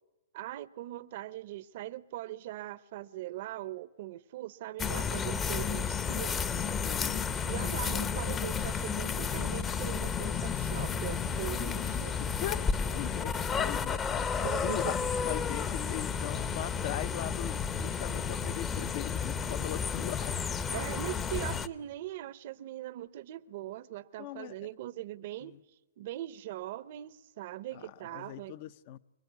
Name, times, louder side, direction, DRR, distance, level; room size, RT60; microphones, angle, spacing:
voice 1, 0.3-6.8 7.5-12.2 14.4-15.1 20.7-25.6 26.0-28.5, right 14 dB, 55° right, 0.8 m, -41 dB
sound 1, 4.8-21.7, left 6 dB, 20° left, 0.9 m, -32 dB
voice 2, 6.8-7.2 11.5-11.6 11.9-14.9 15.2-20.4 24.2-24.6 25.4-25.6 27.7-29.0, left 13 dB, 50° left, 0.8 m, -40 dB
24.5 x 22.0 x 9.4 m
hypercardioid pair, 135°, 0 cm